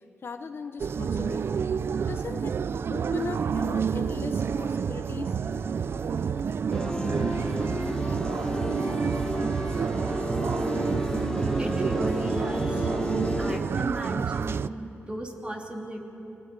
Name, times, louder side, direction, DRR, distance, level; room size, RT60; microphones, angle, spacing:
voice 1, 0.2-1.4 2.1-2.6 2.9-5.4, left 5 dB, 60° left, 8 dB, 1.0 m, -38 dB
sound 1, 0.8-14.7, right 6 dB, 60° right, 0.4 m, -29 dB
sound 2, 4.4-12.3, right 5 dB, 90° right, 1.1 m, -49 dB
sound 3, 6.7-13.6, left 1 dB, 15° left, 1.2 m, -31 dB
voice 2, 11.6-13.1 13.4-16.0, right 1 dB, 25° right, 1 dB, 3.0 m, -36 dB
25.5 x 18.0 x 7.6 m, 3.0 s
cardioid pair, 85°, 5 cm